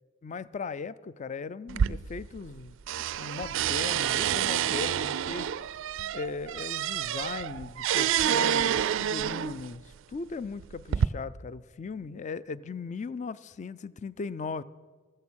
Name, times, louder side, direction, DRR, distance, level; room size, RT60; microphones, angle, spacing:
voice 1, 0.2-2.8 3.2-5.5 6.1-14.6, left 4 dB, 35° left, 0.4 m, -38 dB
sound 1, 1.7-2.6 2.9-9.7 10.4-11.1, right 9 dB, 65° right, 0.3 m, -28 dB
15.0 x 14.5 x 6.2 m
head